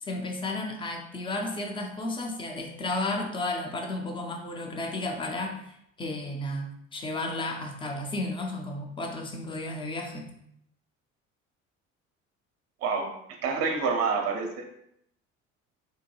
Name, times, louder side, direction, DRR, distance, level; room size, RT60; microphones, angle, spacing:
voice 1, 0.0-10.3, left 2 dB, 15° left, 2 dB, 0.3 m, -33 dB
voice 2, 13.4-14.6, right 5 dB, 35° right, 3 dB, 0.5 m, -27 dB
2.7 x 2.2 x 2.8 m, 0.74 s
figure-of-eight pair, 55°, 40 cm